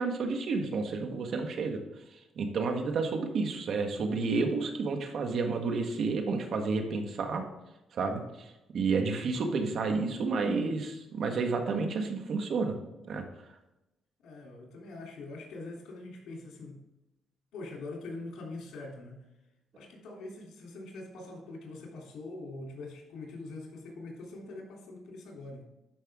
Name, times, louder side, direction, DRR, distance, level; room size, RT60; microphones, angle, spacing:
voice 1, 0.0-1.8 2.1-7.4 7.9-12.8 13.0-13.2, right 4 dB, 60° right, 4 dB, 1.6 m, -30 dB
voice 2, 14.2-16.8 17.5-19.2 19.7-25.6, left 2 dB, 80° left, 0 dB, 3.3 m, -43 dB
12.0 x 5.6 x 3.7 m, 0.97 s
cardioid pair, 90°, 0 cm